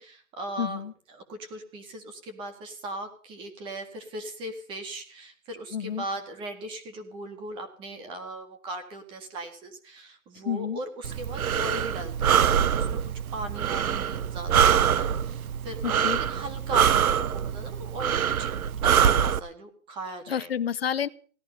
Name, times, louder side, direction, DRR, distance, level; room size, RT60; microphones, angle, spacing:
voice 1, 0.0-0.8 1.1-13.0 13.3-18.5 18.8-20.5, right 1 dB, 10° right, 6 dB, 1.9 m, -38 dB
voice 2, 0.6-0.9 5.7-6.0 10.4-10.8 15.8-16.2 20.3-21.1, left 8 dB, 45° left, 16 dB, 0.8 m, -29 dB
Breathing, 11.0-19.4, right 8 dB, 85° right, 0.9 m, -24 dB
17.5 x 13.5 x 5.5 m, 0.43 s
hypercardioid pair, 170°, 41 cm